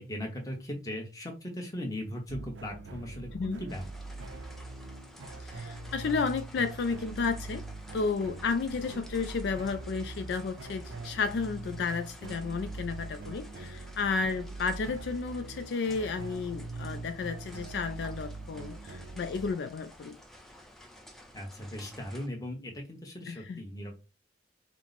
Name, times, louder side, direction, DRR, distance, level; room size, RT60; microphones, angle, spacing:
voice 1, 0.0-3.8 21.3-24.0, equal, 20° left, 0.9 m, -38 dB
sound 1, 2.3-19.5, right 3 dB, 85° right, 0.5 m, -42 dB
sound 2, 3.7-22.3, left 1 dB, ahead, 0.5 m, -52 dB
voice 2, 5.4-7.6 7.9-20.2 23.3-23.6, left 4 dB, 65° left, 0.3 m, -32 dB
4.4 x 2.0 x 4.0 m
head